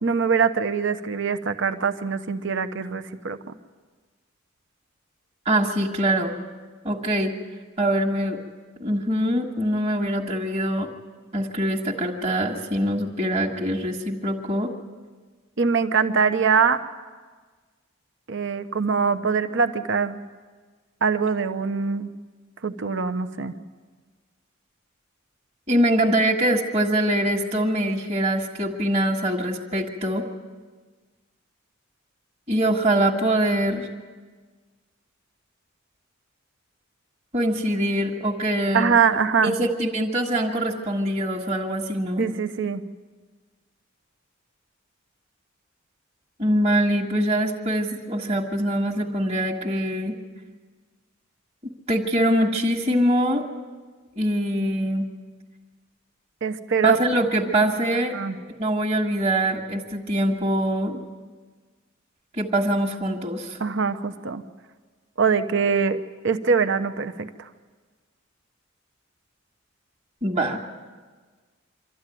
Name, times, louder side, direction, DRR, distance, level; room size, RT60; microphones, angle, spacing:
voice 1, 0.0-3.4 15.6-16.8 18.3-20.2 21.0-22.1 22.6-23.5 38.7-39.6 42.2-42.8 56.4-57.0 58.1-58.4 63.6-64.4 65.2-66.0 66.2-67.5, right 5 dB, 65° right, 10 dB, 0.9 m, -23 dB
voice 2, 5.4-6.4 6.8-7.3 7.8-8.4 8.8-10.9 11.3-14.7 25.7-30.2 32.5-33.9 37.3-38.9 39.4-42.3 46.4-50.1 51.9-53.4 54.1-55.1 56.8-58.1 58.6-61.0 62.4-63.6 70.2-70.6, right 1 dB, 30° right, -2 dB, 1.7 m, -23 dB
25.5 x 13.5 x 9.2 m, 1.4 s
head